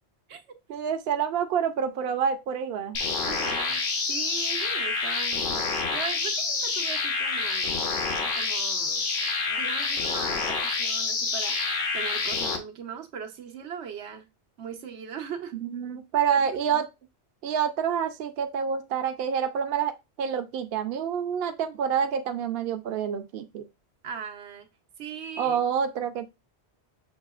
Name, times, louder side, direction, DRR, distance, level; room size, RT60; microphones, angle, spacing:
voice 1, 0.7-3.0 15.6-16.8 17.4-23.6 25.4-26.3, right 7 dB, 65° right, 0.8 m, -27 dB
sound 1, 2.9-12.6, left 4 dB, 55° left, 0.9 m, -28 dB
voice 2, 3.2-7.8 8.2-9.0 9.5-14.3 14.6-15.6 16.3-16.8 24.0-24.7 25.0-25.6, right 7 dB, 90° right, 1.0 m, -39 dB
6.4 x 2.7 x 2.3 m
omnidirectional pair, 1.1 m